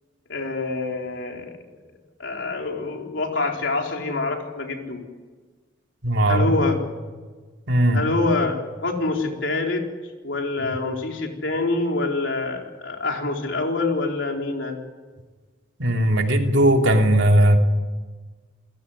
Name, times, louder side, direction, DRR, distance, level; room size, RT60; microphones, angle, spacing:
voice 1, 0.3-1.5 2.2-5.0 6.3-6.8 7.9-9.8 10.2-14.7, left 3 dB, 65° left, 2 dB, 4.3 m, -26 dB
voice 2, 6.0-6.5 7.7-8.0 10.6-10.8 15.8-17.6, right 1 dB, 65° right, 3 dB, 3.0 m, -18 dB
29.0 x 16.5 x 9.9 m, 1.4 s
head